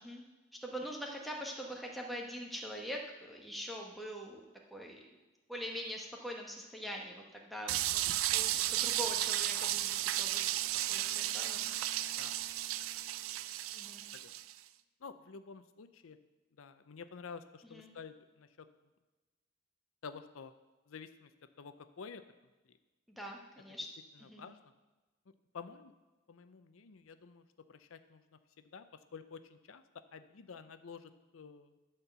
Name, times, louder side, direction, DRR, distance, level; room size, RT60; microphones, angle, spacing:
voice 1, 0.6-4.4 4.7-5.0 5.5-8.1 8.3-12.0 13.7-14.0 17.7-17.9 23.2-23.9 24.3-24.5, equal, ahead, -1 dB, 1.1 m, -43 dB
sound 1, 7.7-14.5, right 14 dB, 90° right, 0.4 m, -34 dB
Wind instrument woodwind instrument, 9.2-14.7, left 5 dB, 40° left, 2.3 m, -61 dB
voice 2, 15.0-16.2 16.6-18.7 20.0-20.5 20.9-21.3 21.6-22.2 22.7-22.8 24.1-24.6 25.5-25.9 26.3-27.4 27.7-28.2 28.7-28.8 29.1-29.8 30.1-31.8, left 5 dB, 90° left, 11 dB, 0.6 m, -50 dB
12.5 x 4.5 x 6.8 m, 1.2 s
head